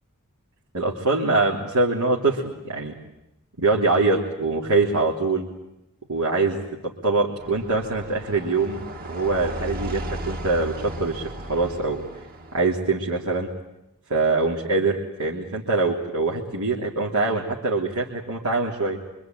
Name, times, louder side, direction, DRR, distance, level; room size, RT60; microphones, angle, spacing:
voice 1, 0.7-2.9 3.6-5.5 6.1-8.8 9.1-12.0 12.5-13.5 14.1-19.0, right 3 dB, 90° right, -3 dB, 3.1 m, -23 dB
sound 1, 7.4-12.6, right 1 dB, 45° right, 1.7 m, -35 dB
25.0 x 25.0 x 9.2 m, 0.92 s
head